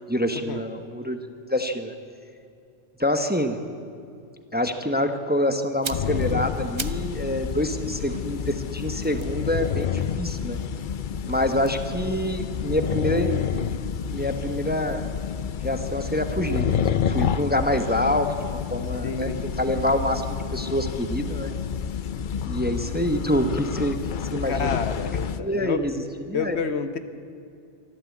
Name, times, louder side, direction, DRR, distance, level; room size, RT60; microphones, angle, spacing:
voice 1, 0.1-1.2 1.5-1.9 3.0-3.7 4.5-10.6 11.3-13.6 14.1-15.0 15.6-16.7 17.1-20.2 20.5-21.5 22.4-24.0 24.3-24.8 25.4-25.9 26.3-26.6, left 1 dB, 10° right, 7 dB, 1.0 m, -26 dB
sound 1, 5.6-7.2 7.5-10.7 11.5-13.6 13.8-14.0, right 5 dB, 35° right, 0.5 m, -41 dB
sound 2, 5.9-25.4, left 7 dB, 55° left, 0.7 m, -29 dB
voice 2, 19.0-19.4 24.5-25.8 26.3-27.0, left 6 dB, 70° left, 10 dB, 1.3 m, -29 dB
23.5 x 13.5 x 8.5 m, 2.5 s
omnidirectional pair, 1.2 m